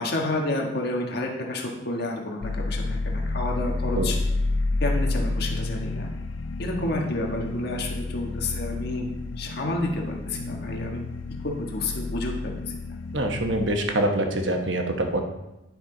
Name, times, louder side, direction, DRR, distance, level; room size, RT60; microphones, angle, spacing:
voice 1, 0.0-4.2 4.8-6.1 6.6-9.1 9.4-11.0 11.4-12.7, left 2 dB, 55° left, 1 dB, 1.5 m, -30 dB
sound 1, 2.4-13.8, left 2 dB, 90° left, 0.5 m, -30 dB
voice 2, 13.1-15.2, right 1 dB, 70° right, 4 dB, 1.1 m, -25 dB
10.0 x 6.0 x 3.9 m, 0.98 s
head